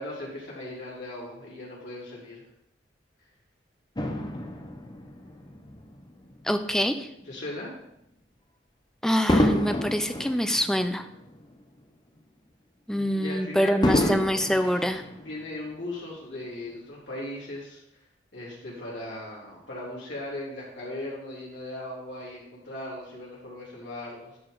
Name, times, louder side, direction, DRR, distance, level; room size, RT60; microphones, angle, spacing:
voice 1, 0.0-2.4 7.3-7.7 12.9-14.3 15.1-17.8 18.3-24.4, left 1 dB, 80° left, -5 dB, 3.8 m, -38 dB
Fireworks, 4.0-6.5 7.2-7.4 9.3-11.8 12.2-12.3 13.8-15.7 16.4-16.5, left 1 dB, 25° left, 0.8 m, -29 dB
voice 2, 6.4-7.1 9.0-11.1 12.9-15.0, equal, 5° left, 8 dB, 0.5 m, -25 dB
11.0 x 5.9 x 3.9 m, 0.82 s
head